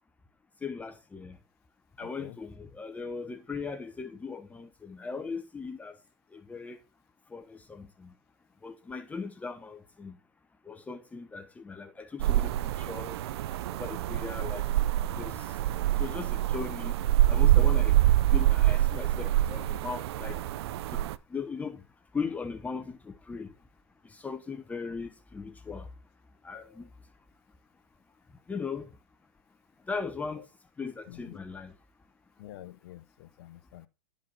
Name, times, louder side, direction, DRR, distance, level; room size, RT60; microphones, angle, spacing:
voice 1, 0.6-1.4 2.0-6.0 6.3-6.8 7.3-8.1 8.6-10.2 10.7-13.2 13.8-14.7 15.1-15.5 16.0-16.9 17.3-18.0 18.3-20.4 20.9-21.0 21.3-21.8 22.1-23.5 24.1-25.9 26.4-26.9 28.5-28.9 29.9-30.4 30.8-31.7, left 5 dB, 10° left, 0.9 m, -38 dB
sound 1, 12.2-21.2, right 14 dB, 60° right, 0.6 m, -26 dB
voice 2, 32.4-33.9, left 14 dB, 55° left, 1.0 m, -47 dB
12.0 x 5.3 x 5.6 m
hypercardioid pair, 140°, 15 cm